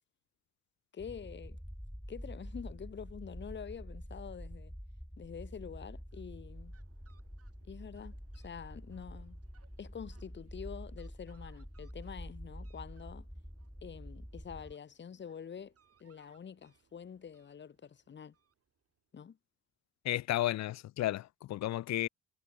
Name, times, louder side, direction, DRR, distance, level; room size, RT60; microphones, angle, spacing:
voice 1, 0.9-1.6 2.1-4.7 5.2-6.7 7.6-9.4 9.8-13.3 13.8-15.7 16.0-18.3 19.1-19.4, left 7 dB, 40° left, 1.2 m, -47 dB
sound 1, 1.0-14.7, equal, ahead, 2.5 m, -47 dB
Fowl, 6.0-19.0, right 7 dB, 50° right, 6.9 m, -71 dB
voice 2, 20.0-22.1, left 14 dB, 65° left, 0.6 m, -33 dB
cardioid pair, 90°, 30 cm